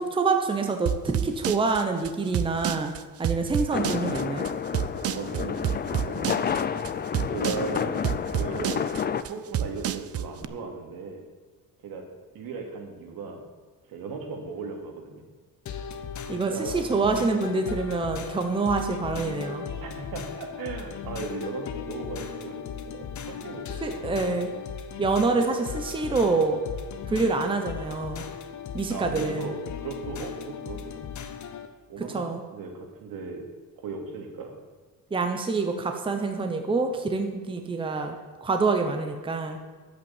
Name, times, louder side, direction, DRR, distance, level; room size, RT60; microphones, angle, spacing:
voice 1, 0.0-2.9 3.2-4.5 16.3-19.7 23.8-24.5 25.0-26.6 27.1-28.2 28.7-29.5 32.0-32.4 35.1-38.1 38.4-39.7, right 3 dB, 15° right, 5 dB, 0.9 m, -26 dB
sound 1, 0.9-10.5, right 10 dB, 45° right, 0.5 m, -29 dB
sound 2, 3.7-9.2, left 7 dB, 30° left, 0.5 m, -30 dB
voice 2, 5.1-6.4 7.3-8.0 8.3-8.8 9.2-11.2 11.8-12.0 12.3-13.4 13.9-15.2 16.3-17.0 19.8-24.4 28.9-31.1 31.9-32.2 32.5-33.5 33.8-34.6, right 4 dB, 75° right, 3 dB, 2.6 m, -37 dB
sound 3, 15.7-31.7, left 7 dB, 55° left, 1.1 m, -37 dB
11.0 x 8.3 x 7.3 m, 1.4 s
cardioid pair, 165°, 35 cm